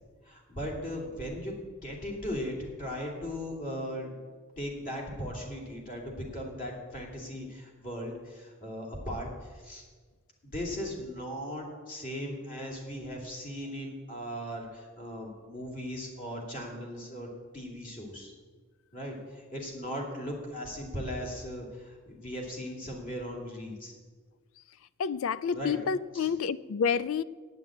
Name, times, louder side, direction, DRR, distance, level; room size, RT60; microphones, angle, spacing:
voice 1, 0.2-4.2 4.6-9.8 10.4-17.3 17.5-18.3 18.9-23.9 25.5-25.8 26.1-26.3, equal, 40° left, -1 dB, 2.8 m, -38 dB
voice 2, 25.0-27.2, left 6 dB, 65° left, 17 dB, 0.4 m, -29 dB
9.0 x 8.1 x 8.7 m, 1.5 s
head